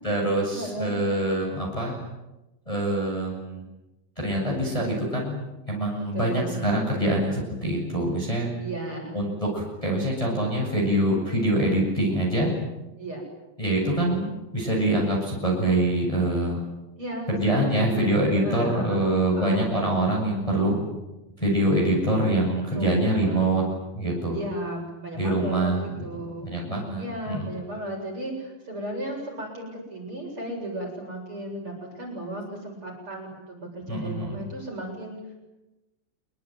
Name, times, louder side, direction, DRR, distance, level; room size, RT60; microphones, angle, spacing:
voice 1, 0.0-2.0 2.7-3.6 4.2-5.4 5.7-8.5 9.1-12.5 13.6-16.6 17.3-20.8 21.4-23.6 23.9-24.4 25.1-25.8 26.5-27.5 33.9-34.3, right 1 dB, 5° left, -2 dB, 7.6 m, -24 dB
voice 2, 0.5-0.9 6.0-6.6 8.6-9.2 13.0-13.2 17.0-19.8 22.7-23.5 24.3-26.5 27.0-35.2, right 1 dB, 30° right, 0 dB, 8.2 m, -35 dB
27.5 x 23.0 x 9.3 m, 1.0 s
omnidirectional pair, 5.2 m